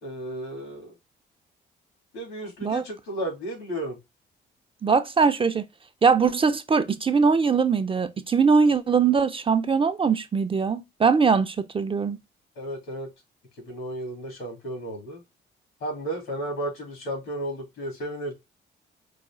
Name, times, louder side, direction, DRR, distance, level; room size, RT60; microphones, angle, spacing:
voice 1, 0.0-0.9 2.1-4.0 12.6-13.1 13.6-15.2 15.8-18.4, right 1 dB, 80° left, 2.6 m, -33 dB
voice 2, 4.8-5.6 6.0-12.2, right 5 dB, 25° right, 0.4 m, -21 dB
4.9 x 2.3 x 3.6 m
cardioid pair, 90°, 20 cm